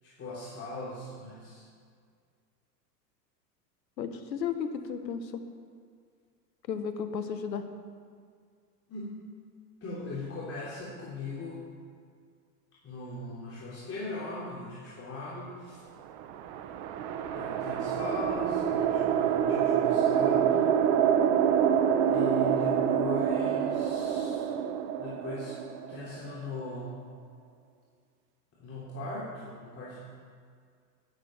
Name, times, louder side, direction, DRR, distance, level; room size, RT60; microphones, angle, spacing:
voice 1, 0.0-1.7 8.9-9.2 9.8-11.6 12.8-15.8 17.3-20.7 22.1-24.5 25.0-25.6 25.9-27.0 28.6-30.0, left 2 dB, 30° left, -7 dB, 3.4 m, -39 dB
voice 2, 4.0-5.3 6.7-7.6, left 7 dB, 85° left, 8 dB, 1.4 m, -33 dB
sound 1, 16.1-26.5, right 8 dB, 50° right, 1.1 m, -27 dB
11.5 x 11.5 x 5.8 m, 2.1 s
hypercardioid pair, 100°, 50 cm